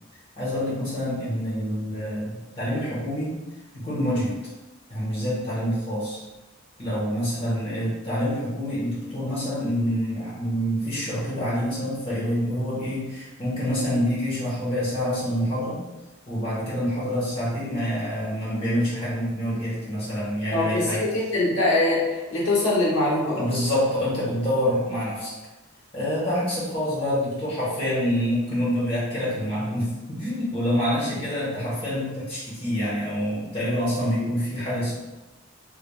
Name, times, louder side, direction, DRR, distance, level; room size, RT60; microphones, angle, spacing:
voice 1, 0.4-3.4 3.7-4.3 4.9-6.2 6.8-15.8 16.3-21.1 23.4-25.3 25.9-35.0, equal, 30° left, -8 dB, 1.2 m, -26 dB
voice 2, 20.5-20.9 21.3-23.4, left 2 dB, 90° left, -6 dB, 1.1 m, -22 dB
3.3 x 3.3 x 2.2 m, 1.1 s
head